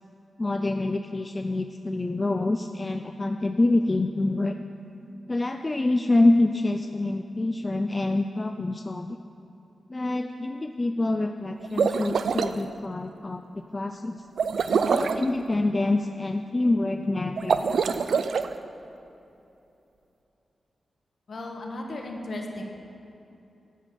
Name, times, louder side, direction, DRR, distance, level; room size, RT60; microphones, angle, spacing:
voice 1, 0.4-4.6 5.3-9.2 9.9-14.2 14.9-18.1, left 2 dB, 25° left, 6 dB, 0.3 m, -26 dB
sound 1, 11.6-12.5 14.4-15.3 17.4-18.5, right 6 dB, 75° right, 0.4 m, -24 dB
voice 2, 21.3-22.6, left 1 dB, 55° left, 1 dB, 1.2 m, -35 dB
11.0 x 5.8 x 6.7 m, 2.8 s
wide cardioid pair, 145°, 0 cm